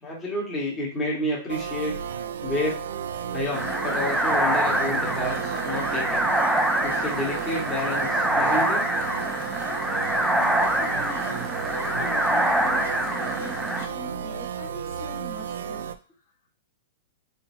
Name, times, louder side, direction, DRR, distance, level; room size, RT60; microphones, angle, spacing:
voice 1, 0.0-1.9 2.4-2.8 3.3-6.3 6.8-8.8 9.4-9.5, left 1 dB, 15° left, -4 dB, 1.6 m, -30 dB
sound 1, 1.5-16.0, right 7 dB, 85° right, 0.4 m, -33 dB
sound 2, 3.5-13.9, right 1 dB, 5° right, 0.4 m, -25 dB
voice 2, 9.9-15.8, left 2 dB, 65° left, -2 dB, 1.8 m, -42 dB
4.0 x 3.8 x 2.7 m, 0.36 s
hypercardioid pair, 140°, 0 cm